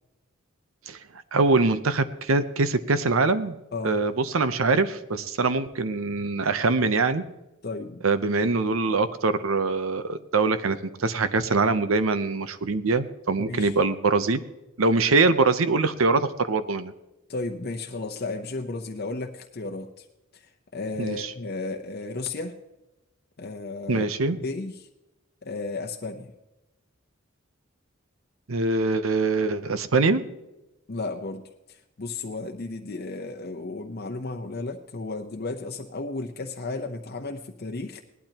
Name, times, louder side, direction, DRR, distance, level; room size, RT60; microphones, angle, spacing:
voice 1, 1.3-3.6 3.8-7.2 8.0-14.4 14.8-16.9 21.0-21.3 23.9-24.4 28.5-30.2, right 3 dB, 85° right, 12 dB, 0.7 m, -23 dB
voice 2, 7.6-8.0 13.4-13.8 17.3-20.1 20.3-22.5 23.4-24.1 24.4-24.9 25.4-26.3 30.9-31.4 31.7-38.0, left 3 dB, 50° left, 3 dB, 0.8 m, -34 dB
18.5 x 12.0 x 2.9 m, 0.98 s
head